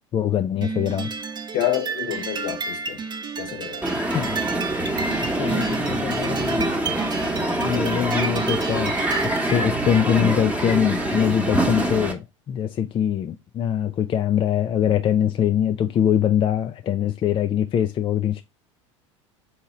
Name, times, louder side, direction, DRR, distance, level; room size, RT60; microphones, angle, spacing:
voice 1, 0.1-1.1 4.1-4.4 5.4-6.7 7.6-9.0 9.2-18.4, left 9 dB, 30° left, 0.4 m, -23 dB
sound 1, 0.6-9.5, right 5 dB, 25° right, 0.6 m, -31 dB
voice 2, 1.5-3.0 3.4-3.9, left 12 dB, 55° left, 0.8 m, -28 dB
Crowd, 3.8-12.1, right 1 dB, 10° right, 1.0 m, -25 dB
3.7 x 2.8 x 4.2 m
hypercardioid pair, 80°, 16 cm